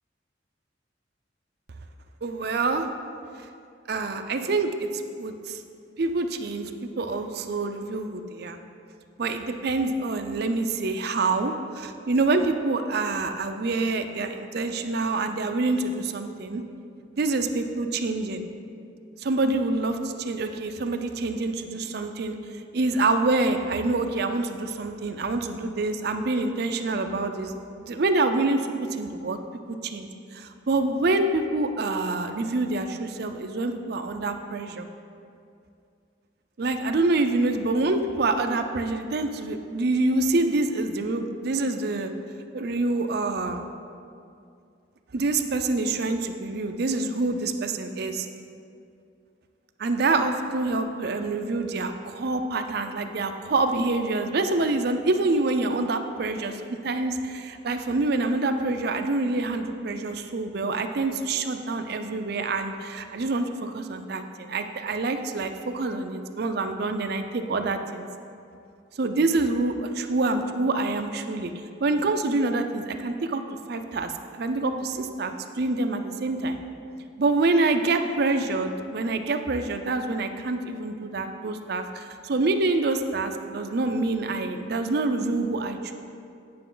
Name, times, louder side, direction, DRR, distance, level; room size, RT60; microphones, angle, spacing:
voice 1, 2.2-2.9 3.4-3.5 3.9-4.7 5.2-5.6 6.0-8.6 9.2-16.6 17.1-18.4 19.2-22.4 22.7-27.5 27.9-29.4 29.7-34.9 36.6-42.1 42.5-43.6 45.1-48.3 49.8-68.1 69.0-71.5 71.8-73.4 73.7-76.6 77.2-86.0, right 3 dB, 55° right, 7 dB, 0.5 m, -26 dB
9.5 x 5.8 x 3.9 m, 2.4 s
head